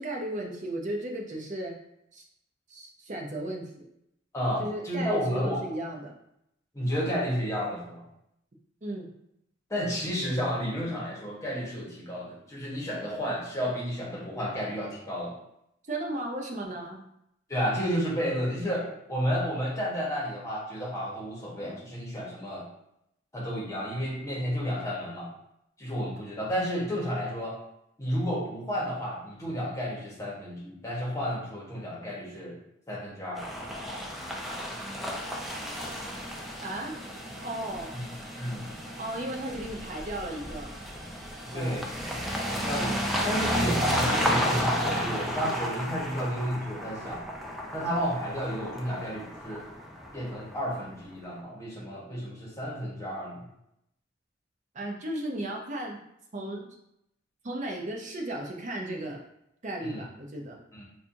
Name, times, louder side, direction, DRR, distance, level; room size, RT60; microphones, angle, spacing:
voice 1, 0.0-1.7 2.1-2.2 2.7-3.9 4.6-6.1 8.8-9.1 15.9-17.0 36.6-36.9 37.4-38.0 39.0-40.7 41.5-41.9 54.7-56.0 56.3-56.8 57.4-59.2 59.6-60.6, right 1 dB, 40° right, 0 dB, 0.6 m, -35 dB
voice 2, 4.3-5.6 6.7-8.0 9.7-15.4 17.5-22.7 23.3-25.3 25.8-27.6 28.0-32.6 32.9-33.4 37.9-38.0 38.4-38.7 41.4-41.9 42.5-47.2 47.7-49.6 50.1-53.4 59.8-60.0 60.7-60.8, equal, 15° left, -5 dB, 1.0 m, -32 dB
sound 1, 33.4-51.0, equal, ahead, 0.4 m, -32 dB
4.3 x 2.3 x 2.6 m, 0.78 s
head